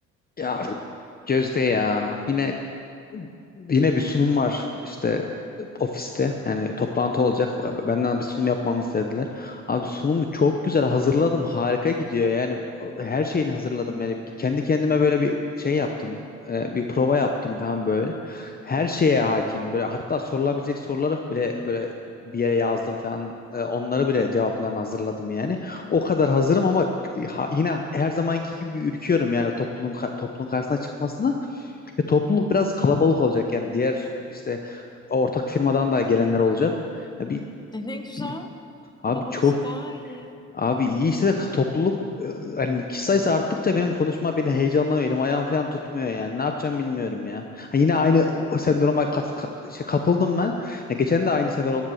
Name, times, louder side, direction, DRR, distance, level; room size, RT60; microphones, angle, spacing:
voice 1, 0.4-0.8 1.3-2.6 3.1-3.3 3.6-5.3 5.6-21.9 22.2-26.9 27.1-31.7 32.1-34.8 35.1-36.7 37.0-37.4 38.2-38.3 39.0-39.5 40.5-51.9, left 4 dB, 30° left, 4 dB, 0.9 m, -24 dB
voice 2, 37.7-38.5 39.1-40.3, left 1 dB, 15° left, 6 dB, 1.2 m, -36 dB
14.5 x 10.5 x 6.4 m, 2.5 s
cardioid pair, 90°, 30 cm